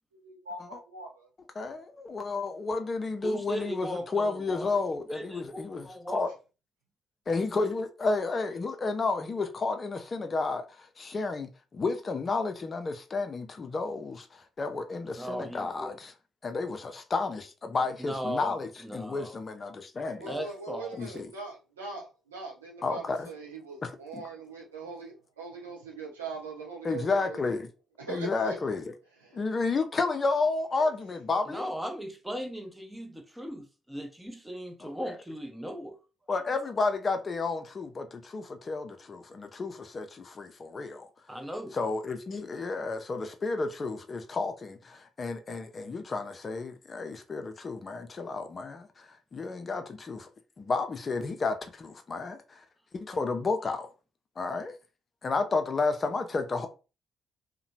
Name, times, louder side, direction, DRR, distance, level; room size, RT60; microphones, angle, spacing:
voice 1, 0.2-1.3 20.2-27.4 28.0-28.6 29.2-29.5 30.8-30.9, right 4 dB, 85° right, 0.7 m, -41 dB
voice 2, 1.6-5.9 6.1-6.3 7.3-16.1 16.4-20.3 21.0-21.3 22.8-23.3 23.8-24.2 26.8-27.7 28.1-28.8 29.3-31.6 34.8-34.9 36.3-41.1 41.7-49.1 49.3-50.3 50.6-52.6 52.9-53.9 54.4-54.7 55.2-56.7, left 3 dB, 40° left, 0.5 m, -31 dB
voice 3, 3.2-4.8 5.1-6.3 15.1-16.0 17.8-19.4 20.3-21.0 31.5-36.0 41.3-41.8, equal, 5° right, 0.7 m, -38 dB
2.8 x 2.1 x 2.7 m
figure-of-eight pair, 45°, 0 cm